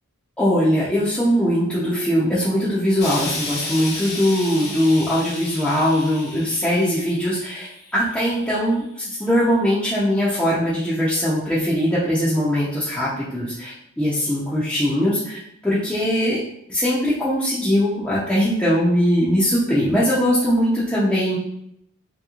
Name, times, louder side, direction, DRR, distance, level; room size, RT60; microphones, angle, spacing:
voice 1, 0.4-7.7 7.9-16.4 16.7-21.4, equal, 5° left, -10 dB, 0.6 m, -21 dB
Explosion, 3.0-8.3 9.1-9.2, left 2 dB, 50° left, 0.9 m, -33 dB
3.1 x 3.0 x 2.4 m, 0.74 s
head